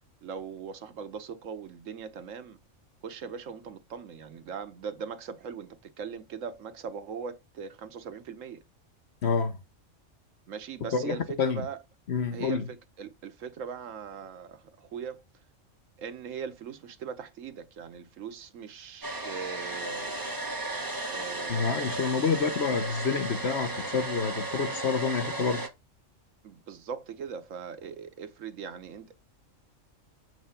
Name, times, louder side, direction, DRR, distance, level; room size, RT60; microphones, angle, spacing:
voice 1, 0.2-2.6 3.0-8.6 10.5-11.2 11.5-11.8 12.3-15.2 16.0-20.2 21.1-22.0 26.4-29.2, right 6 dB, 80° right, 1.2 m, -40 dB
voice 2, 9.2-9.6 10.9-11.6 12.1-12.7 21.5-25.6, left 5 dB, 60° left, 1.3 m, -28 dB
Domestic sounds home sounds, 19.0-25.7, right 2 dB, 20° right, 1.0 m, -34 dB
7.8 x 3.3 x 5.7 m
omnidirectional pair, 1.3 m